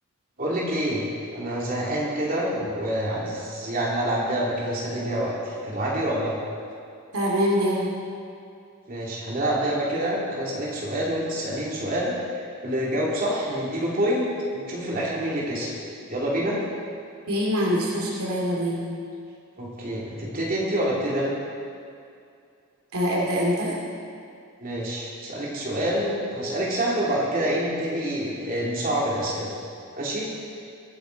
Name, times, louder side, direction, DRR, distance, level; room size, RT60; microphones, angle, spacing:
voice 1, 0.4-1.1 1.3-6.4 8.9-14.3 14.5-15.7 16.0-16.6 19.6-21.3 24.6-29.5 29.9-30.3, right 1 dB, 40° right, -5 dB, 2.9 m, -27 dB
voice 2, 7.1-7.9 17.3-18.8 22.9-23.8, equal, 80° right, -3 dB, 2.5 m, -24 dB
21.5 x 9.4 x 4.0 m, 2.4 s
head